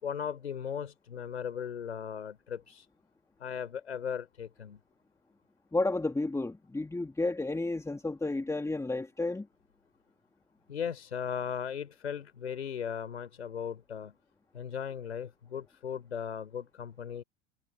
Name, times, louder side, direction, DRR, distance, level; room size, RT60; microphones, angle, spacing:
voice 1, 0.0-2.9 3.4-4.8 10.7-14.1 14.5-17.2, left 8 dB, 80° left, 5.3 m, -37 dB
voice 2, 5.7-9.5, left 2 dB, 10° left, 2.1 m, -31 dB
figure-of-eight pair, 75°, 33 cm